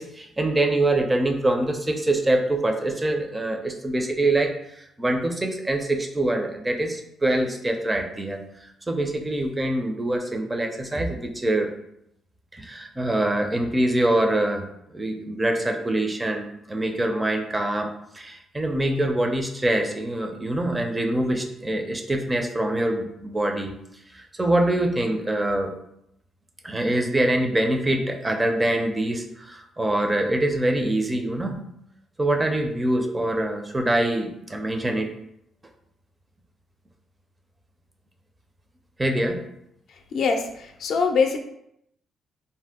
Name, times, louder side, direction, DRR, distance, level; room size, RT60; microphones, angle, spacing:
voice 1, 0.0-8.4 8.9-11.7 12.5-23.7 24.1-25.7 26.6-31.6 32.2-35.1 39.0-39.4, right 1 dB, 20° right, 4 dB, 0.4 m, -24 dB
voice 2, 40.1-41.4, left 5 dB, 65° left, 4 dB, 0.4 m, -23 dB
2.6 x 2.1 x 3.5 m, 0.77 s
cardioid pair, 90°, 0 cm